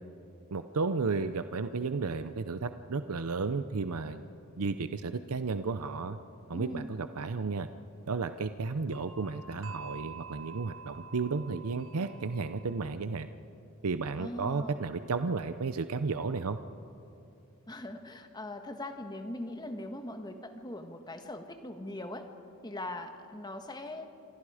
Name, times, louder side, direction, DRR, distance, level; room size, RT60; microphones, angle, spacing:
voice 1, 0.5-4.2 4.5-6.2 6.5-7.7 8.1-13.3 13.8-16.6, right 4 dB, 90° right, 10 dB, 0.7 m, -33 dB
sound 1, 6.4-6.5 8.9-12.8, right 5 dB, 65° right, 1.1 m, -47 dB
voice 2, 6.5-6.9 14.2-14.8 17.7-22.3 22.6-24.1, left 1 dB, 20° left, 6 dB, 1.4 m, -41 dB
28.0 x 25.5 x 5.0 m, 2.7 s
head